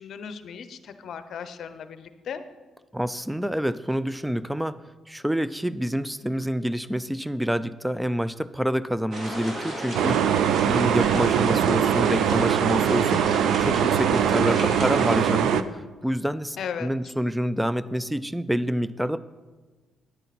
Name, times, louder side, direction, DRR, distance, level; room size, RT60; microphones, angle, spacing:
voice 1, 0.0-2.4 16.6-16.9, left 7 dB, 65° left, 11 dB, 0.7 m, -36 dB
voice 2, 2.9-4.8 5.1-19.2, equal, 5° right, 16 dB, 0.3 m, -27 dB
sound 1, 9.1-15.2, right 1 dB, 45° right, 2.5 m, -32 dB
sound 2, 9.9-15.6, right 9 dB, 80° right, 0.4 m, -22 dB
10.0 x 9.0 x 4.1 m, 1.3 s
cardioid pair, 90°, 0 cm